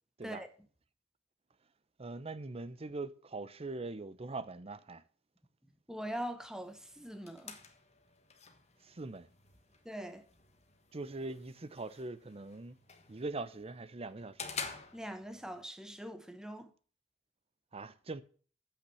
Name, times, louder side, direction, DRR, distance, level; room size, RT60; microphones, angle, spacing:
voice 1, 2.0-5.0 8.8-9.3 10.9-12.8 13.1-14.5 17.7-18.2, right 3 dB, 30° right, 0.7 m, -42 dB
voice 2, 5.9-7.6 9.8-10.2 14.9-16.7, equal, 5° right, 1.0 m, -42 dB
sound 1, 6.6-15.6, left 5 dB, 35° left, 1.4 m, -49 dB
8.4 x 5.9 x 7.6 m
head